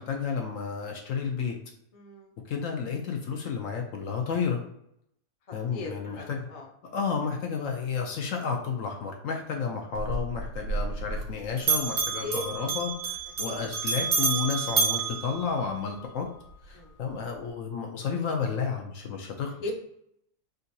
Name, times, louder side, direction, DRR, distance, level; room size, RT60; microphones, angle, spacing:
voice 1, 0.0-1.6 2.5-4.6 5.5-6.4 6.8-16.3 16.7-19.7, left 6 dB, 70° left, 2 dB, 0.8 m, -31 dB
voice 2, 1.9-2.3 5.7-6.7 12.2-12.4 13.4-13.6 16.7-16.9 19.6-19.7, left 2 dB, 45° left, -1 dB, 0.5 m, -37 dB
Bell, 9.9-11.3 11.6-16.1, right 4 dB, 60° right, 1.3 m, -29 dB
3.8 x 2.6 x 2.7 m, 0.75 s
omnidirectional pair, 1.6 m